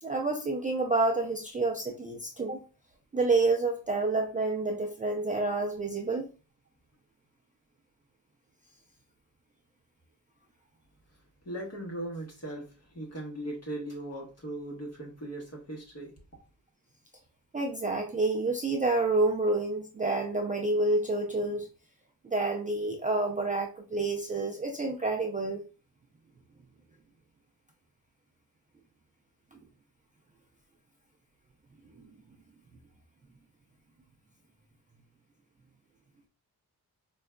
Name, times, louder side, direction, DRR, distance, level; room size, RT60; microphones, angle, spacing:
voice 1, 0.0-2.6 3.1-6.3 17.5-21.7 22.2-25.6, right 2 dB, 20° right, 1 dB, 0.4 m, -28 dB
voice 2, 11.4-16.1, right 1 dB, 40° left, -1 dB, 1.3 m, -38 dB
4.5 x 2.4 x 2.2 m, 0.35 s
wide cardioid pair, 105°, 38 cm